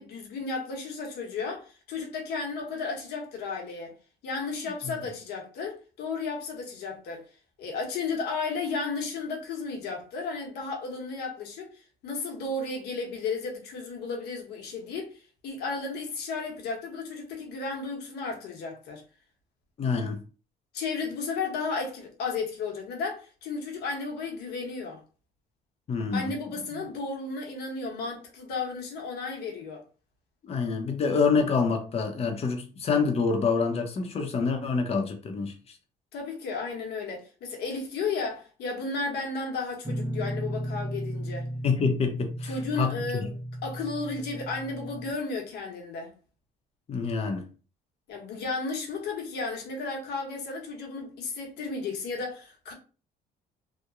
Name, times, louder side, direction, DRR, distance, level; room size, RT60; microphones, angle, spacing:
voice 1, 0.0-3.9 4.2-7.2 7.6-19.0 20.7-25.0 26.1-29.8 36.1-41.5 42.4-46.1 48.1-52.7, left 4 dB, 75° left, 1.0 m, -34 dB
voice 2, 19.8-20.2 25.9-26.3 26.7-26.8 30.4-35.5 41.6-42.5 42.8-42.9 46.9-47.4, left 5 dB, 35° left, 0.6 m, -26 dB
Guitar, 39.8-45.1, equal, 15° right, 0.5 m, -35 dB
2.9 x 2.1 x 2.4 m
cardioid pair, 110°, 17 cm